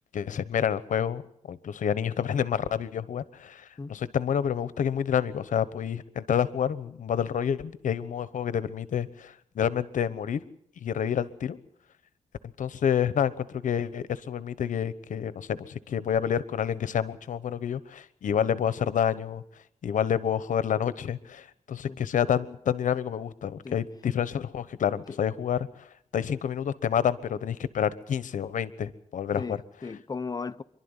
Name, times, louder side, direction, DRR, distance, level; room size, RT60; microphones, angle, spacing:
voice 1, 0.1-1.2 1.5-10.4 10.8-11.6 12.6-19.4 19.8-25.8 26.1-29.4, left 8 dB, 80° left, 1.1 m, -28 dB
voice 2, 29.4-30.6, left 4 dB, 30° left, 0.8 m, -36 dB
27.0 x 12.0 x 9.8 m
wide cardioid pair, 110°, 13 cm